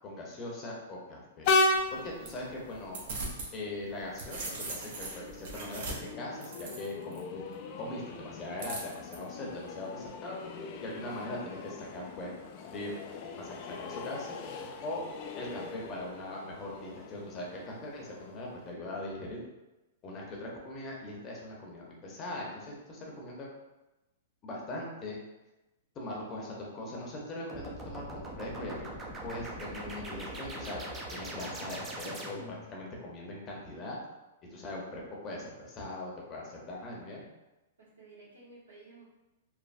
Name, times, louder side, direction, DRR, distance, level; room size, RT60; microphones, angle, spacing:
voice 1, 0.0-1.5 1.9-3.0 3.5-7.4 7.8-10.4 10.8-12.3 12.7-12.9 13.4-14.4 14.8-15.0 15.4-19.4 20.0-23.5 24.4-25.2 25.9-28.7 29.2-34.0 34.5-37.2, left 1 dB, 30° left, -2 dB, 0.8 m, -40 dB
Train, 1.4-18.7, left 2 dB, 45° left, 0.3 m, -37 dB
sound 1, 1.8-3.5 3.9-7.2 8.6-9.2, right 3 dB, 60° right, 0.7 m, -41 dB
sound 2, 27.5-32.7, right 1 dB, 20° right, 0.5 m, -41 dB
voice 2, 37.8-39.0, right 3 dB, 90° right, -5 dB, 1.1 m, -54 dB
3.2 x 2.0 x 2.5 m, 1.0 s
hypercardioid pair, 125°, 0 cm